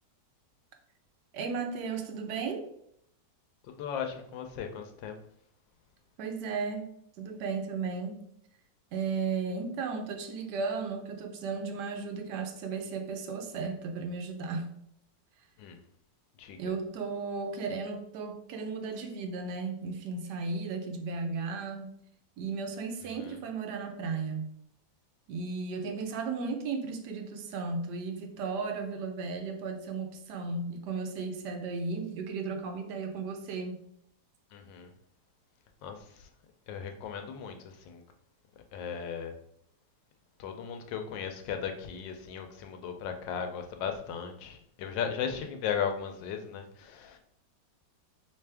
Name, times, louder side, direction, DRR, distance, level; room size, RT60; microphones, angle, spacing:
voice 1, 1.3-2.7 6.2-6.9 7.2-8.2 8.9-14.7 16.6-21.9 22.4-24.5 25.3-33.8, right 4 dB, 75° right, 5 dB, 1.2 m, -35 dB
voice 2, 3.7-5.2 15.6-15.8 16.4-16.7 23.2-23.4 34.5-34.9 35.8-36.3 36.7-38.0 38.7-39.3 40.4-47.2, left 7 dB, 90° left, 5 dB, 1.3 m, -36 dB
3.3 x 3.2 x 3.3 m, 0.69 s
omnidirectional pair, 1.9 m